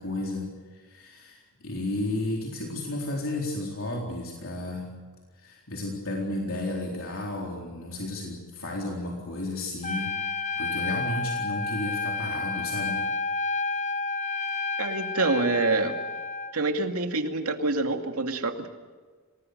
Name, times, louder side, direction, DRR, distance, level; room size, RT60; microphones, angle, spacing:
voice 1, 0.0-4.9 5.4-13.0, left 2 dB, 65° left, -1 dB, 4.0 m, -33 dB
Trumpet, 9.8-16.5, left 4 dB, 35° left, 1.0 m, -30 dB
voice 2, 14.8-16.0 16.5-18.7, right 3 dB, 90° right, 5 dB, 2.4 m, -26 dB
27.0 x 20.0 x 6.7 m, 1.5 s
head